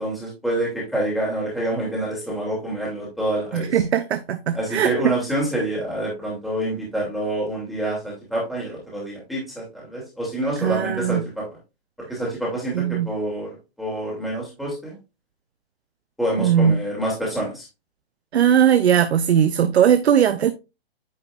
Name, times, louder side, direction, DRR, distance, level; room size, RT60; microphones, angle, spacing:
voice 1, 0.0-3.8 4.6-11.4 12.0-13.5 13.8-15.0 16.2-17.7, right 1 dB, ahead, 2.8 m, -27 dB
voice 2, 3.5-4.9 10.6-11.2 12.7-13.1 16.4-16.8 18.3-20.5, right 9 dB, 80° right, 0.7 m, -19 dB
9.4 x 5.1 x 2.5 m
hypercardioid pair, 140°, 32 cm